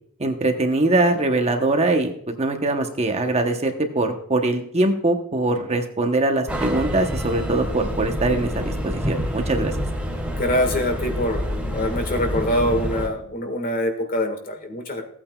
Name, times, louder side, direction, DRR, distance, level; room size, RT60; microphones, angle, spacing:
voice 1, 0.2-9.7, right 2 dB, 30° right, 5 dB, 0.9 m, -22 dB
sound 1, 6.5-13.1, equal, 5° right, 2.2 m, -27 dB
voice 2, 10.3-11.4 11.7-15.1, left 1 dB, 40° left, 6 dB, 1.6 m, -24 dB
15.5 x 8.7 x 2.3 m, 0.65 s
head